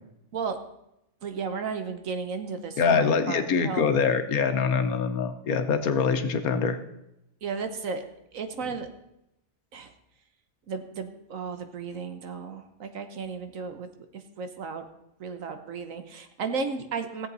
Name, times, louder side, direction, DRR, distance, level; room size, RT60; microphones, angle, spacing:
voice 1, 1.2-3.9 7.4-8.0 8.3-8.9 9.7-9.9 10.7-13.9 14.1-14.9 15.2-17.3, right 5 dB, 70° right, 8 dB, 1.4 m, -34 dB
voice 2, 2.8-6.8, left 5 dB, 90° left, 8 dB, 1.4 m, -24 dB
16.5 x 7.8 x 4.0 m, 0.84 s
omnidirectional pair, 1.5 m